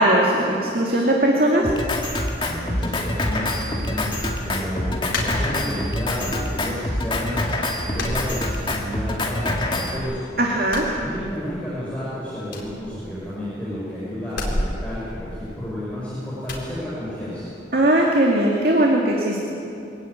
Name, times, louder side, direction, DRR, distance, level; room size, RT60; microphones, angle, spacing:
voice 1, 0.0-1.7 10.4-10.8 17.7-19.4, right 1 dB, 50° right, -2 dB, 2.4 m, -19 dB
Drum kit, 1.6-10.0, left 1 dB, 25° left, 2.1 m, -26 dB
voice 2, 2.4-7.4 7.8-10.2 10.9-17.5, equal, 5° left, -9 dB, 5.7 m, -31 dB
sound 1, 5.1-6.0 6.4-7.1 7.3-7.5 7.9-9.1 9.3-10.2 10.6-11.7 12.0-12.1 12.4-13.6 14.3-15.9 16.4-16.7, left 1 dB, 85° left, 4.1 m, -31 dB
23.5 x 16.0 x 9.5 m, 2.7 s
head